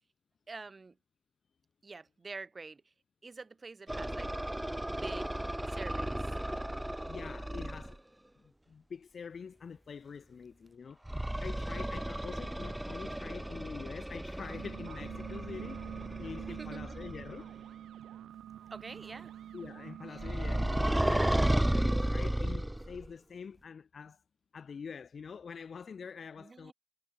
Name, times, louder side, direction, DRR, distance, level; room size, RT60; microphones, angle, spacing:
voice 1, 0.5-1.0 1.8-2.9 3.2-4.3 4.9-5.4 5.7-6.2 11.7-11.8 16.5-17.0 18.7-19.3 26.4-26.7, right 3 dB, 25° right, 6.1 m, -46 dB
sound 1, 3.9-8.0 11.1-17.4 20.2-23.1, right 1 dB, 5° right, 0.6 m, -33 dB
voice 2, 7.1-8.0 8.4-15.8 16.2-17.5 19.5-24.2 24.5-26.7, left 6 dB, 45° left, 1.7 m, -45 dB
sound 2, 14.3-21.5, right 10 dB, 70° right, 0.7 m, -46 dB
cardioid pair, 90°, 0 cm